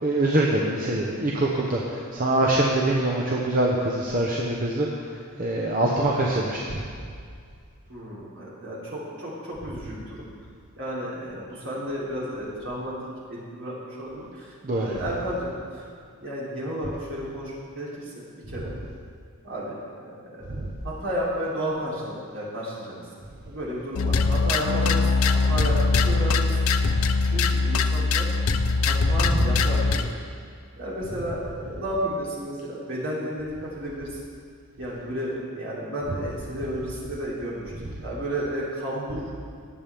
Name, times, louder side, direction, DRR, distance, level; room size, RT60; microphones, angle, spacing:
voice 1, 0.0-4.9 5.4-6.8 14.6-14.9 20.5-20.7 29.2-29.4, right 1 dB, 40° right, -2 dB, 0.9 m, -24 dB
voice 2, 7.9-10.2 10.8-12.9 13.3-15.9 16.2-18.7 19.4-19.7 20.0-20.4 20.8-23.0 23.4-25.0 25.3-26.6 27.2-28.3 28.8-30.1 30.8-34.2 34.8-39.3, equal, 60° right, -6 dB, 3.1 m, -32 dB
sound 1, 23.9-30.1, left 3 dB, 75° left, 0.5 m, -22 dB
18.5 x 7.4 x 3.5 m, 2.2 s
head